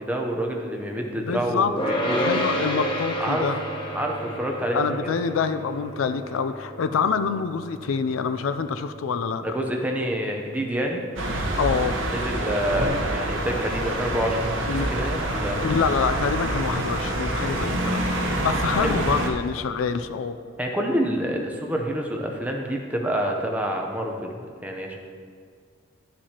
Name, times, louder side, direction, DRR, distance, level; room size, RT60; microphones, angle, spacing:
voice 1, 0.0-2.4 3.2-3.5 3.9-4.9 9.4-11.0 12.1-15.6 18.8-19.0 20.6-25.0, right 1 dB, 5° right, 1 dB, 0.7 m, -27 dB
voice 2, 1.1-1.7 2.1-3.6 4.7-9.4 11.6-12.0 14.7-15.1 15.6-18.0 18.4-20.4, left 5 dB, 80° left, 10 dB, 0.4 m, -26 dB
sound 1, 1.8-13.1, equal, 25° left, 1.0 m, -32 dB
sound 2, 11.2-19.3, right 1 dB, 65° right, 1.1 m, -26 dB
11.5 x 7.3 x 2.9 m, 2.1 s
head